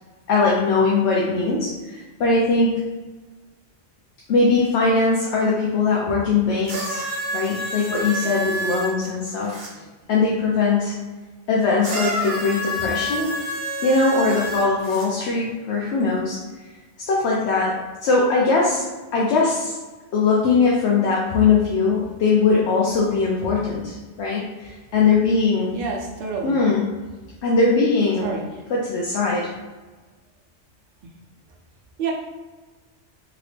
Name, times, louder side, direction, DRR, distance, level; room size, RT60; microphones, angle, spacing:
voice 1, 0.3-2.8 4.3-7.0 7.3-9.6 10.1-10.9 11.5-13.3 13.8-16.4 17.0-17.7 18.0-18.8 19.1-19.8 20.1-25.7 26.4-26.9 27.4-28.3 28.7-29.5, left 4 dB, 70° left, -4 dB, 0.9 m, -20 dB
sound 1, 6.6-9.7 11.8-15.1 16.0-16.1, equal, 40° right, 1.2 m, -28 dB
voice 2, 25.7-26.7 28.2-28.6 32.0-32.1, right 5 dB, 60° right, -1 dB, 0.6 m, -28 dB
2.9 x 2.9 x 3.1 m, 1.3 s
omnidirectional pair, 1.2 m